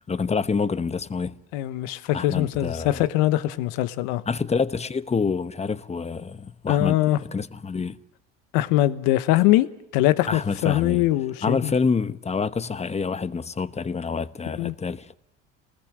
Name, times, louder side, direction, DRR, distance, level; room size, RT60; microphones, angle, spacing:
voice 1, 0.1-1.3 2.1-3.0 4.3-8.0 10.3-11.1 11.4-15.1, left 5 dB, 20° left, 1.0 m, -27 dB
voice 2, 1.5-4.2 6.7-7.2 8.5-11.7 14.5-14.7, left 15 dB, 80° left, 1.2 m, -22 dB
28.0 x 20.0 x 7.7 m
supercardioid pair, 90°, 30 cm